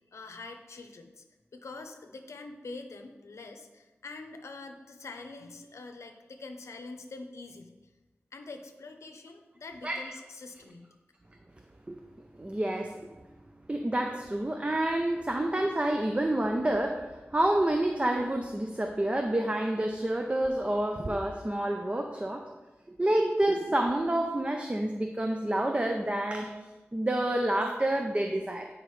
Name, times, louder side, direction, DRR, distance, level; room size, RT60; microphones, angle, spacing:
voice 1, 0.1-1.2 1.5-7.7 8.3-10.9, left 3 dB, 90° left, 6 dB, 0.7 m, -45 dB
voice 2, 12.4-12.9 13.7-22.5 22.9-26.5 26.9-28.7, right 1 dB, 25° right, 4 dB, 0.5 m, -28 dB
9.5 x 5.0 x 3.2 m, 1.2 s
wide cardioid pair, 60°, 5 cm